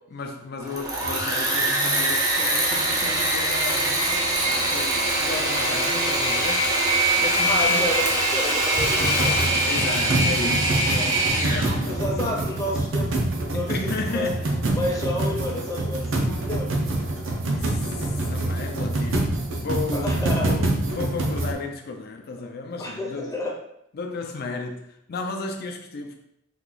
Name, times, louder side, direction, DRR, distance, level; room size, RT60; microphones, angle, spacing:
voice 1, 0.1-8.1 9.7-12.4 12.7-12.9 13.5-14.5 17.5-23.3 23.9-26.2, left 3 dB, 55° left, 0.5 m, -34 dB
Engine / Mechanisms, 0.6-11.8, right 1 dB, 20° right, 0.6 m, -23 dB
voice 2, 7.5-9.5 11.9-13.1 13.5-13.7 14.1-14.4 14.8-16.7 19.9-20.6 22.8-23.5, left 1 dB, 15° left, 0.7 m, -30 dB
sound 1, 8.8-21.5, right 2 dB, 75° right, 0.6 m, -26 dB
3.0 x 2.4 x 3.8 m
head